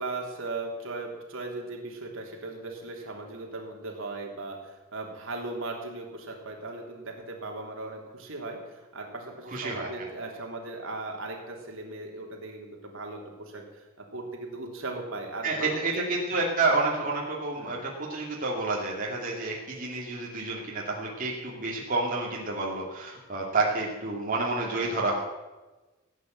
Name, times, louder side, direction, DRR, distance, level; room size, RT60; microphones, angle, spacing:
voice 1, 0.0-16.1 17.6-17.8 24.7-25.0, right 2 dB, 65° right, 1 dB, 3.3 m, -38 dB
voice 2, 9.5-9.9 15.4-25.1, right 3 dB, 40° right, -3 dB, 2.6 m, -29 dB
17.0 x 9.4 x 7.9 m, 1.1 s
head